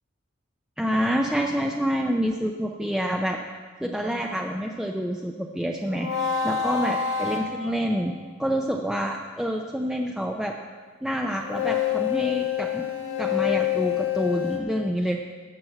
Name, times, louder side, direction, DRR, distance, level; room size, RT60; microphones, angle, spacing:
voice 1, 0.8-3.4 3.8-6.1 6.4-8.1 8.4-10.5 11.0-12.9 13.2-15.2, equal, 5° right, 1 dB, 0.5 m, -27 dB
sound 1, 5.9-8.2 11.4-14.6, left 9 dB, 80° left, 1.5 m, -27 dB
12.0 x 5.9 x 7.8 m, 1.5 s
head